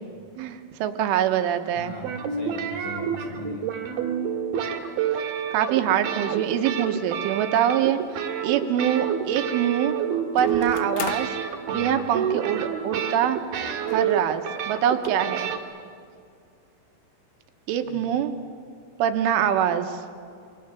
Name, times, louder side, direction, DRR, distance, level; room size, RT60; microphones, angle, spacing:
voice 1, 0.4-1.9 5.2-5.3 5.5-10.0 10.4-11.3 11.7-13.4 13.9-15.5 17.7-18.3 19.0-20.0, right 9 dB, 80° right, 7 dB, 3.5 m, -24 dB
voice 2, 1.7-3.7 11.7-12.1 17.8-18.2, left 2 dB, 55° left, 1 dB, 2.4 m, -40 dB
sound 1, 2.0-15.6, right 8 dB, 60° right, 3.0 m, -28 dB
sound 2, 8.0-8.1 10.4-11.4 12.3-12.4 12.7-12.8 13.9-14.2 14.5-14.6 15.0-15.1, left 11 dB, 80° left, 3.4 m, -36 dB
26.5 x 24.5 x 7.0 m, 2.3 s
omnidirectional pair, 5.8 m